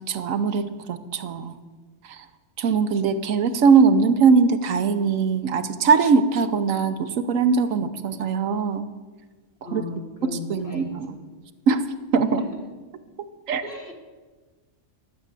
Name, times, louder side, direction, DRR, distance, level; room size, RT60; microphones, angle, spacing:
voice 1, 0.1-1.5 2.1-2.2 2.6-8.9 9.6-9.8 10.2-11.2 11.7-11.8 12.1-12.4 13.5-13.6, right 5 dB, 80° right, 10 dB, 1.2 m, -21 dB
voice 2, 9.6-11.2 12.4-12.5 13.6-13.9, left 3 dB, 50° left, 1 dB, 1.6 m, -36 dB
12.5 x 7.9 x 7.5 m, 1.3 s
omnidirectional pair, 1.4 m